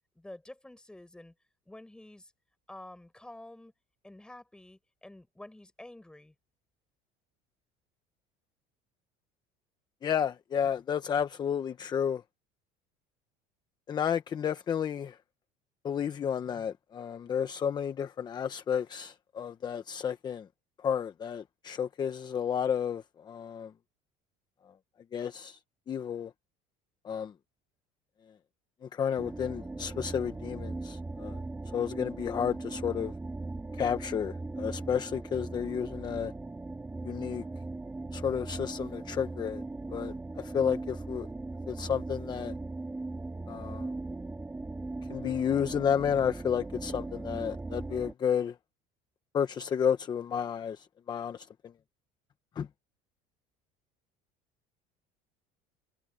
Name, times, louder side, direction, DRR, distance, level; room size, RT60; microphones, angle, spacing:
voice 1, 0.1-1.3 1.7-2.3 2.7-3.7 4.0-6.3, left 1 dB, 5° left, 5.7 m, -49 dB
voice 2, 10.0-12.2 13.9-15.2 15.8-20.5 20.8-23.7 25.1-25.6 25.9-26.3 27.0-27.3 28.8-31.4 31.6-33.1 33.7-36.3 37.0-37.4 38.1-39.6 39.9-41.3 41.7-42.5 43.5-43.9 45.1-48.6 49.3-51.7 52.6-52.7, left 8 dB, 25° left, 0.9 m, -31 dB
sound 1, 29.2-48.1, right 2 dB, 10° right, 2.4 m, -39 dB
cardioid pair, 150°, 16 cm